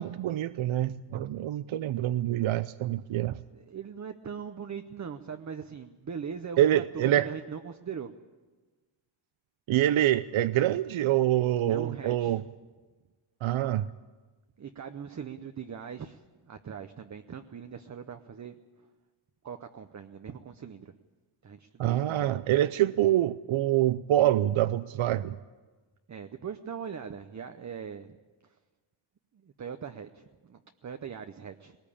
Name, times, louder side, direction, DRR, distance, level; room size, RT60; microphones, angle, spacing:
voice 1, 0.0-3.4 6.6-7.3 9.7-12.4 13.4-13.9 21.8-25.4, right 13 dB, 70° right, 14 dB, 0.6 m, -26 dB
voice 2, 3.5-8.1 11.7-12.4 14.6-18.5 19.4-20.9 21.4-22.3 26.1-28.1 28.4-28.5 29.3-31.8, right 7 dB, 35° right, 7 dB, 0.7 m, -41 dB
20.5 x 19.0 x 8.6 m, 1.3 s
wide cardioid pair, 165°, 49 cm